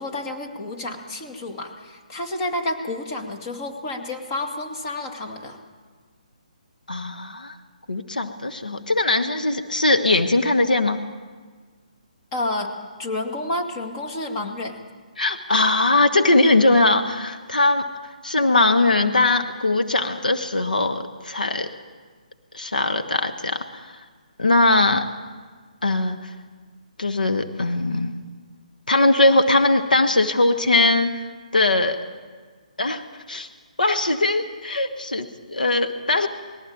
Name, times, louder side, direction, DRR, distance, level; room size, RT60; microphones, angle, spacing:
voice 1, 0.0-5.6 12.3-12.7 13.0-14.8, left 2 dB, 30° left, 3 dB, 2.2 m, -30 dB
voice 2, 6.9-7.5 7.9-11.0 15.2-17.8 18.2-21.7 22.5-23.6 24.4-25.1 25.8-26.2 27.0-28.2 28.9-31.1 31.5-32.0 32.8-33.5 33.8-36.3, left 2 dB, 85° left, 6 dB, 1.2 m, -20 dB
20.0 x 15.5 x 8.7 m, 1.5 s
figure-of-eight pair, 140°, 4 cm